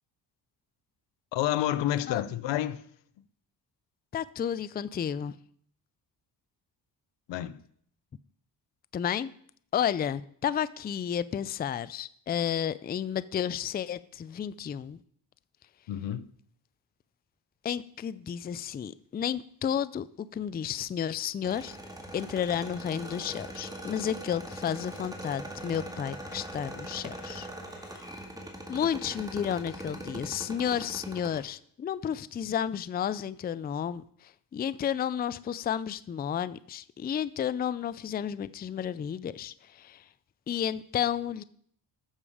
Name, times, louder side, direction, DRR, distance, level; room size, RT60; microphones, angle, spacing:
voice 1, 1.3-2.8 7.3-7.6 15.9-16.3, left 12 dB, 90° left, 0.7 m, -29 dB
voice 2, 4.1-5.4 8.9-9.3 9.7-15.0 17.6-21.8 22.1-28.1 28.7-40.0 40.5-41.4, left 9 dB, 25° left, 0.3 m, -32 dB
sound 1, 21.4-31.4, right 1 dB, 10° right, 2.0 m, -41 dB
13.0 x 7.0 x 4.9 m
cardioid pair, 110°, 42 cm